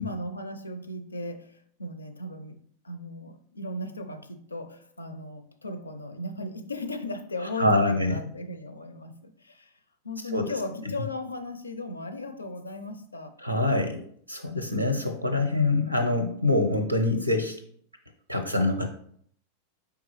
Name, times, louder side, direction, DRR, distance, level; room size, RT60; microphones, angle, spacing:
voice 1, 0.0-2.6 2.8-9.7 10.0-13.3, left 2 dB, 80° left, 0.4 m, -36 dB
voice 2, 7.6-8.1 10.3-10.5 10.8-10.9 13.4-14.0 14.3-17.6 18.3-18.9, left 2 dB, 90° right, 0.6 m, -25 dB
4.6 x 3.5 x 3.1 m
figure-of-eight pair, 90°, 0 cm